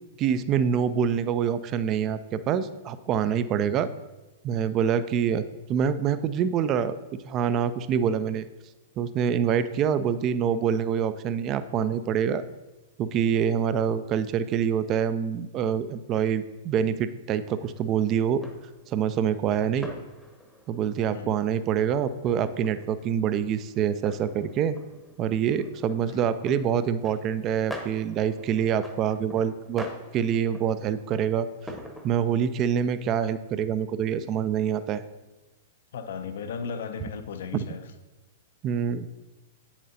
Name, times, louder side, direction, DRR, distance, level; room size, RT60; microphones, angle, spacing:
voice 1, 0.2-3.9 4.4-7.0 7.2-8.5 9.0-12.4 13.0-18.4 18.9-19.9 20.7-24.8 25.2-29.9 30.1-31.5 32.0-35.0 38.6-39.1, right 8 dB, 35° right, 13 dB, 0.4 m, -26 dB
sound 1, 17.6-32.4, equal, ahead, 0.9 m, -45 dB
voice 2, 19.6-20.0 21.1-21.4 26.1-26.3 35.9-37.9, left 6 dB, 65° left, 8 dB, 0.6 m, -36 dB
8.4 x 7.2 x 2.7 m, 1.1 s
figure-of-eight pair, 105°, 0 cm